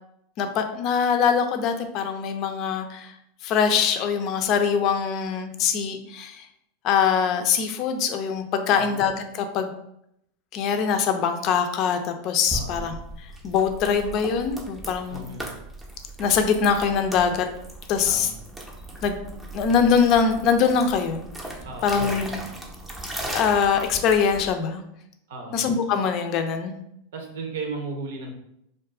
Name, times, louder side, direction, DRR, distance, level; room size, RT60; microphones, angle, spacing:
voice 1, 0.4-3.1 3.4-6.5 6.8-9.7 10.5-12.9 13.4-15.2 16.2-17.5 17.9-18.3 19.0-19.2 19.5-21.2 21.8-22.3 23.2-24.8 25.5-26.7, left 6 dB, 45° left, 7 dB, 0.4 m, -23 dB
sound 1, 12.5-24.5, right 1 dB, 10° right, 0.6 m, -37 dB
voice 2, 12.5-12.8 15.1-15.5 18.0-18.3 21.6-21.9 25.3-25.6 27.1-28.3, right 3 dB, 75° right, 2 dB, 0.7 m, -35 dB
2.5 x 2.3 x 3.6 m, 0.77 s
supercardioid pair, 125°, 0 cm